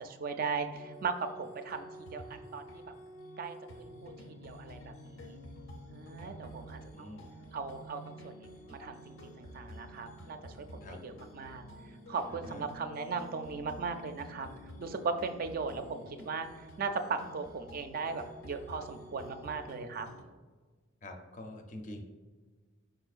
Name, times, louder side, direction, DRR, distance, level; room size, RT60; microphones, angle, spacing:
voice 1, 0.0-1.9 2.1-2.2 2.5-2.7 3.4-4.1 4.4-5.4 5.9-7.2 7.5-11.6 12.1-14.5 14.8-16.5 16.8-20.1, right 4 dB, 45° right, 8 dB, 0.4 m, -38 dB
sound 1, 0.7-20.2, equal, 80° left, 0.7 m, -50 dB
voice 2, 6.9-7.3 10.8-11.0 12.3-12.6 21.0-22.0, left 1 dB, 40° left, 4 dB, 0.5 m, -46 dB
4.9 x 4.6 x 2.4 m, 1.4 s
head